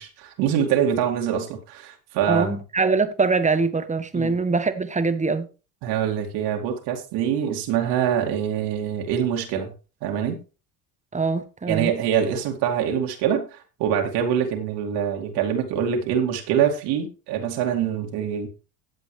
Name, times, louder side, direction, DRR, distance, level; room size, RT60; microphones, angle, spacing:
voice 1, 0.0-2.5 4.1-4.4 5.8-9.7 10.0-10.4 11.7-18.5, right 8 dB, 60° right, 2.4 m, -24 dB
voice 2, 2.3-5.5 11.1-11.9, right 4 dB, 15° right, 1.4 m, -23 dB
16.5 x 7.7 x 3.3 m
hypercardioid pair, 70°, 47 cm